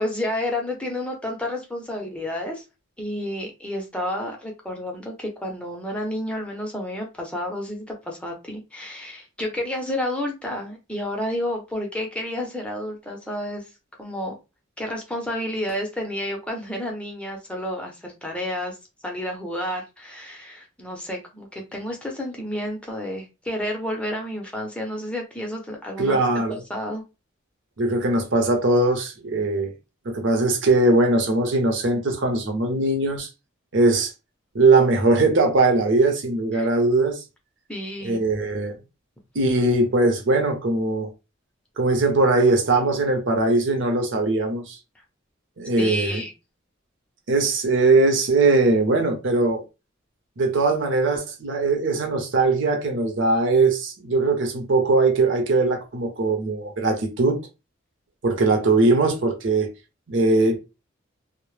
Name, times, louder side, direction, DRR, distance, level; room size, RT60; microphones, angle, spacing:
voice 1, 0.0-2.6 3.0-13.6 14.0-14.3 14.8-18.8 19.0-26.2 26.5-27.0 36.5-36.7 37.7-38.2 45.8-46.3, left 1 dB, 5° left, 0.5 m, -30 dB
voice 2, 26.0-26.6 27.8-29.7 30.1-33.3 33.7-34.1 34.5-37.2 38.0-38.7 39.3-41.1 41.8-44.8 45.6-46.2 47.3-49.6 50.4-57.4 58.2-59.7 60.1-60.6, right 2 dB, 65° right, 0.6 m, -20 dB
2.1 x 2.0 x 3.1 m
head